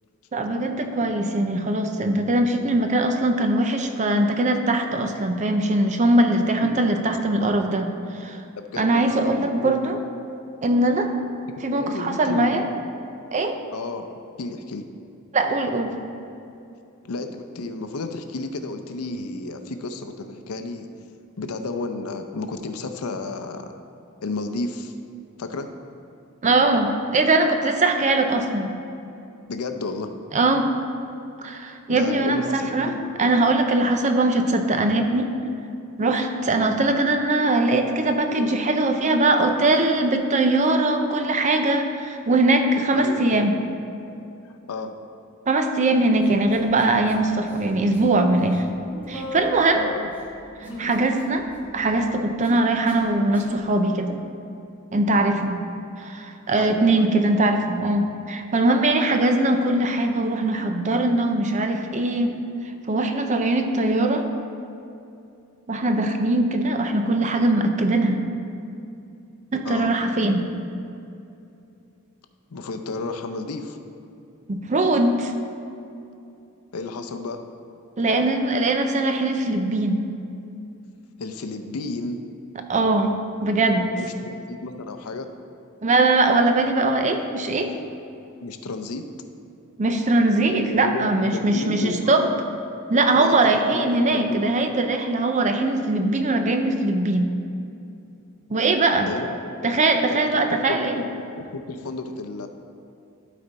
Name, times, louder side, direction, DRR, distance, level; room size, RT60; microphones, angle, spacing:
voice 1, 0.3-7.9 8.1-8.4 8.8-10.0 10.6-11.1 11.6-12.6 13.3-13.6 15.3-15.9 26.4-28.7 30.3-30.7 31.4-32.9 33.2-35.3 36.0-43.5 45.5-48.6 49.1-49.8 50.6-51.5 51.7-54.2 54.9-55.6 56.0-62.4 62.9-64.3 65.7-68.2 69.5-70.5 74.5-75.3 78.0-80.0 82.7-83.1 83.4-83.8 85.8-87.7 89.8-92.3 92.9-97.3 98.5-99.1 99.6-101.0, right 2 dB, 35° right, 6 dB, 0.5 m, -21 dB
voice 2, 8.6-9.8 11.7-12.8 13.7-14.1 14.4-14.9 17.0-20.9 21.4-23.7 24.2-24.9 25.4-25.7 29.5-30.1 31.9-33.0 42.9-43.4 44.5-44.9 49.7-50.1 56.5-57.1 69.6-69.9 72.5-73.8 76.7-77.4 81.2-82.2 83.9-85.3 88.4-89.0 90.5-92.3 93.1-94.5 99.0-99.7 100.1-102.5, left 3 dB, 85° left, 7 dB, 0.6 m, -32 dB
Human voice, 46.2-47.1 47.4-48.2 48.4-53.6, left 1 dB, 10° right, 1.4 m, -37 dB
12.0 x 4.2 x 4.0 m, 2.7 s
head